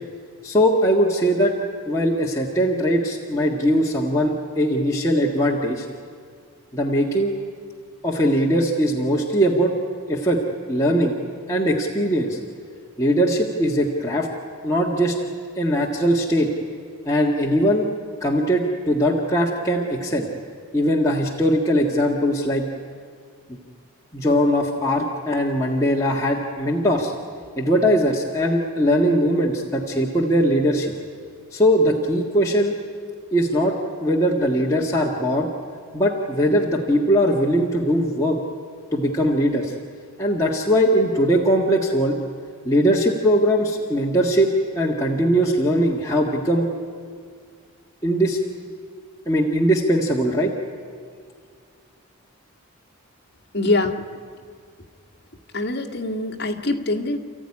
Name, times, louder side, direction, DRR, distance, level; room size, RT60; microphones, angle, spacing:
voice 1, 0.4-1.5 1.9-5.9 6.7-7.3 8.0-9.7 10.1-10.4 10.7-11.1 11.5-12.4 13.0-14.3 14.6-15.2 15.6-16.5 17.0-17.9 18.2-20.3 20.7-22.7 23.5-23.6 24.1-27.1 27.6-30.9 31.5-32.7 33.3-35.5 35.9-38.4 38.9-39.7 40.2-42.1 42.6-44.5 44.7-46.7 48.0-48.4 49.2-50.5, equal, 15° left, -4 dB, 1.7 m, -20 dB
voice 2, 53.5-54.0 55.5-57.2, left 2 dB, 45° left, 3 dB, 1.8 m, -23 dB
29.0 x 14.5 x 9.8 m, 2.1 s
head